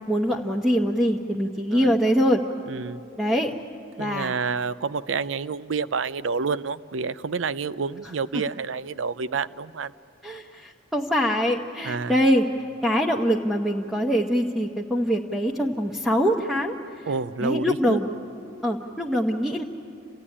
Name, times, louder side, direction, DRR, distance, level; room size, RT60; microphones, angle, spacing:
voice 1, 0.1-2.4 3.2-3.5 4.0-4.3 10.2-12.5 12.8-16.8 17.4-18.0 18.6-19.6, equal, ahead, -2 dB, 0.9 m, -23 dB
voice 2, 2.7-3.0 4.0-9.9 11.8-12.2 17.1-18.0, right 5 dB, 80° right, 16 dB, 0.5 m, -29 dB
28.5 x 15.5 x 9.9 m, 2.7 s
head